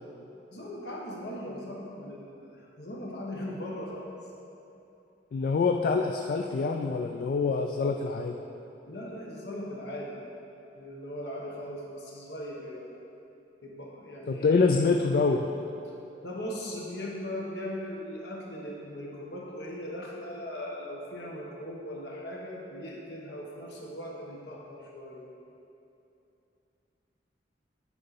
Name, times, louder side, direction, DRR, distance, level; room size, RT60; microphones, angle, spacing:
voice 1, 0.5-4.1 8.9-10.2 10.7-12.9 13.6-14.7 16.2-25.2, left 1 dB, 70° left, -3 dB, 1.2 m, -39 dB
voice 2, 5.3-8.4 14.3-15.5, left 4 dB, 55° left, 3 dB, 0.3 m, -25 dB
9.6 x 4.5 x 4.2 m, 2.8 s
head